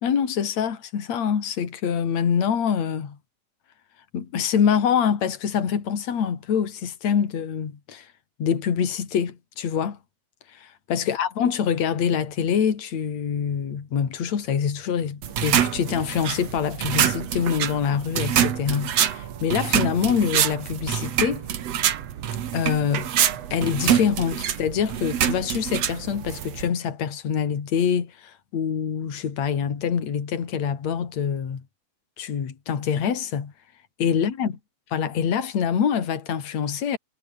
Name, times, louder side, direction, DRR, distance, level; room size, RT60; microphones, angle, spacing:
voice 1, 0.0-3.2 4.1-8.1 8.4-10.0 10.5-21.5 22.5-23.1 23.5-31.6 32.2-33.5 34.0-34.5 34.9-37.0, left 7 dB, 40° left, 3.6 m, -25 dB
sound 1, 15.2-26.7, right 10 dB, 85° right, 1.4 m, -25 dB
omnidirectional pair, 5.4 m